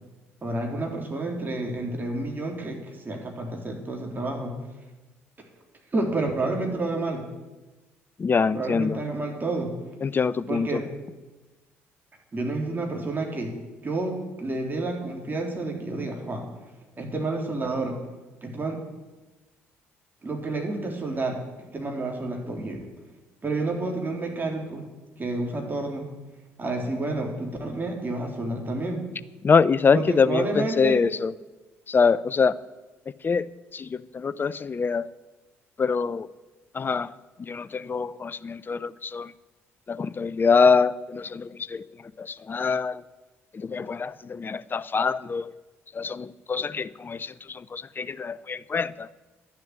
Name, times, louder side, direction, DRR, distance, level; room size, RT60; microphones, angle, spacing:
voice 1, 0.4-4.5 5.9-7.2 8.5-9.7 10.5-10.8 12.3-13.5 13.8-16.5 17.0-18.0 18.4-18.8 20.2-21.4 21.7-22.9 23.4-24.9 25.2-26.1 26.6-29.1 29.9-31.0, right 2 dB, 30° right, 1 dB, 3.6 m, -29 dB
voice 2, 8.2-9.0 10.0-10.8 29.4-31.3 31.9-32.6 33.2-33.5 33.7-35.1 35.8-36.3 36.7-37.1 37.5-39.3 39.9-41.8 42.2-43.0 43.5-45.5 45.9-49.1, left 5 dB, 30° left, 17 dB, 0.6 m, -24 dB
11.5 x 7.4 x 9.8 m, 1.2 s
hypercardioid pair, 50°, 7 cm